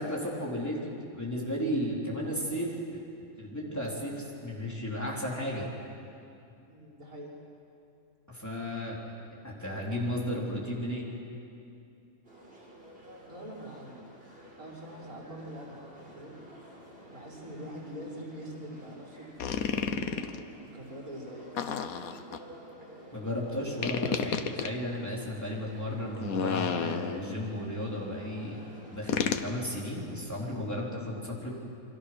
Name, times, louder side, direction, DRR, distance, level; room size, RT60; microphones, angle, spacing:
voice 1, 0.0-2.7 3.4-5.7 8.3-9.0 9.4-11.1 23.1-28.6 28.9-31.5, equal, 10° left, -4 dB, 4.2 m, -34 dB
voice 2, 6.7-7.3 13.3-14.1 14.6-16.3 17.1-21.5, equal, 85° right, -5 dB, 5.9 m, -44 dB
sound 1, 12.2-30.1, right 1 dB, 40° right, 4.0 m, -51 dB
sound 2, 19.4-20.4 21.6-22.4 23.8-24.7 26.2-27.4 29.1-29.5, left 7 dB, 80° left, 1.4 m, -31 dB
29.0 x 23.5 x 6.3 m, 2.6 s
omnidirectional pair, 1.5 m